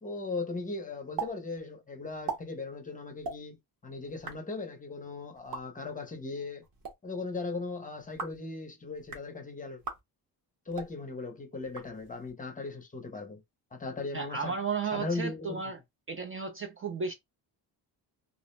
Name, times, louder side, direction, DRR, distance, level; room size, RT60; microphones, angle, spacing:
voice 1, 0.0-6.7 7.0-9.8 10.7-13.4 13.7-14.5 14.9-15.6, left 3 dB, 20° left, 0.5 m, -38 dB
sound 1, 1.2-1.3 1.6-1.7 2.1-2.4 3.2-3.4 4.1-4.4 5.4-5.6 6.6-6.9 8.0-8.4 9.0-9.3 9.8-10.0 10.7-10.9 11.6-12.3, right 5 dB, 60° right, 0.9 m, -39 dB
voice 2, 14.1-15.8 16.1-17.1, right 5 dB, 35° right, 0.4 m, -34 dB
2.4 x 2.0 x 3.0 m
cardioid pair, 155°, 41 cm